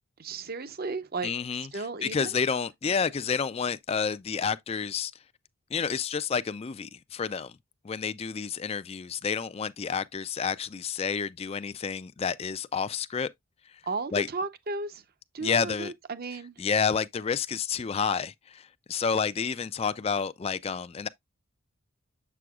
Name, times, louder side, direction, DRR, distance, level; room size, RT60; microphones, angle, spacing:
voice 1, 0.2-1.3 1.7-2.3 13.9-15.0 15.3-16.6, right 3 dB, 45° right, 0.7 m, -34 dB
voice 2, 1.2-5.1 5.7-7.6 7.8-13.3 13.7-13.8 14.1-14.3 15.4-15.9 16.6-21.1, left 6 dB, 30° left, 0.3 m, -30 dB
7.7 x 6.1 x 2.3 m
head